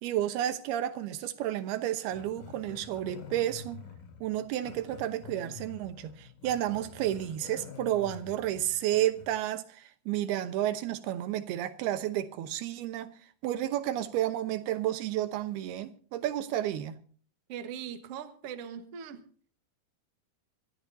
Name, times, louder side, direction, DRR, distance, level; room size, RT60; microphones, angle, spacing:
voice 1, 0.0-3.8 4.2-13.1 13.4-16.9, right 12 dB, 85° right, 3.0 m, -31 dB
Growling, 2.1-9.4, left 5 dB, 70° left, 3.9 m, -48 dB
voice 2, 17.5-19.2, right 8 dB, 55° right, 1.8 m, -40 dB
25.5 x 13.0 x 2.7 m
omnidirectional pair, 4.4 m